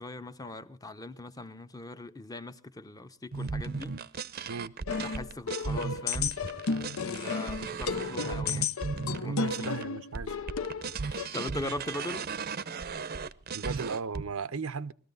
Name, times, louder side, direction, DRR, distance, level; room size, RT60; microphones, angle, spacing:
voice 1, 0.0-4.0 5.0-6.4 7.0-8.7 9.2-9.7 11.1-12.3, left 2 dB, 15° left, 0.8 m, -40 dB
sound 1, 3.3-9.8 10.1-14.2, right 4 dB, 45° right, 0.7 m, -36 dB
sound 2, 4.9-11.3, left 5 dB, 75° left, 0.7 m, -33 dB
voice 2, 9.2-10.4 13.5-14.9, right 5 dB, 90° right, 0.8 m, -36 dB
21.0 x 14.0 x 4.0 m
head